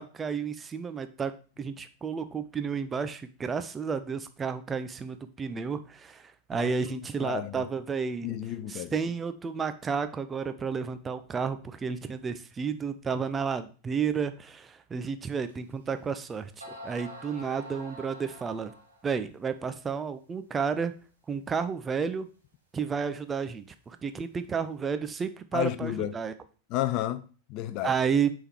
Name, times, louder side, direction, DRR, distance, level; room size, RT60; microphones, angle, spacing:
voice 1, 0.0-1.3 1.6-8.4 8.7-16.5 16.8-18.7 19.0-20.9 21.3-22.3 22.7-26.3 27.8-28.3, right 6 dB, 20° right, 0.5 m, -31 dB
voice 2, 6.5-7.6 8.2-8.9 25.5-26.1 26.7-27.9, left 13 dB, 40° left, 0.4 m, -32 dB
sound 1, 15.5-15.6 16.3-16.4 16.6-19.1, equal, 85° right, 1.4 m, -45 dB
6.7 x 3.7 x 4.5 m
figure-of-eight pair, 90°, 0 cm